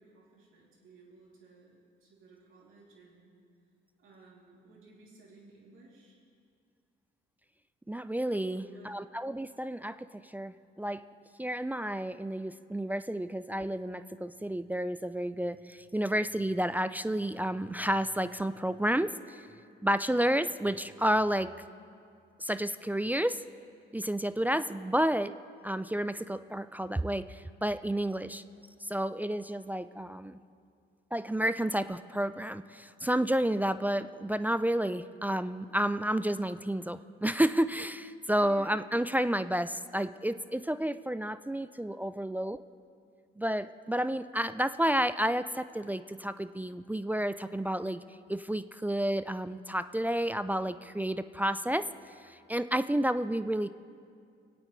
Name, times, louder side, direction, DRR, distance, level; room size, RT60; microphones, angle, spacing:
voice 1, 0.0-3.4 4.0-6.2 8.4-8.9 38.2-38.9, right 3 dB, 75° right, -4 dB, 3.0 m, -55 dB
voice 2, 7.9-10.0 10.2-11.0 11.4-19.4 19.8-21.5 22.4-23.4 23.9-25.3 25.6-28.4 28.8-30.4 31.1-42.6 43.4-48.0 48.3-51.9 52.2-53.7, right 1 dB, 10° right, 12 dB, 0.3 m, -31 dB
24.5 x 8.8 x 3.2 m, 2.3 s
cardioid pair, 70°, 21 cm